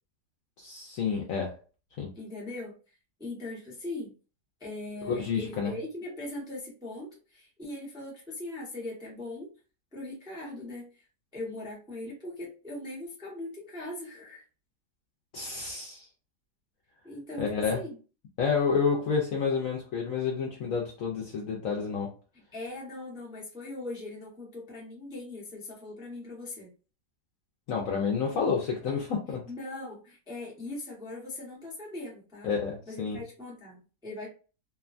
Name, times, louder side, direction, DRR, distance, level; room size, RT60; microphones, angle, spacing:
voice 1, 0.6-1.6 2.0-2.1 5.1-5.7 15.3-16.1 17.4-17.8 18.4-22.1 27.7-29.4 32.4-33.2, left 5 dB, 70° left, -1 dB, 0.8 m, -29 dB
voice 2, 2.1-2.7 3.2-4.1 4.6-9.5 9.9-11.0 11.3-14.4 17.0-18.0 22.3-26.7 29.5-32.5 32.9-34.3, left 2 dB, 5° right, -5 dB, 0.5 m, -40 dB
2.9 x 2.2 x 2.4 m, 0.36 s
omnidirectional pair, 1.9 m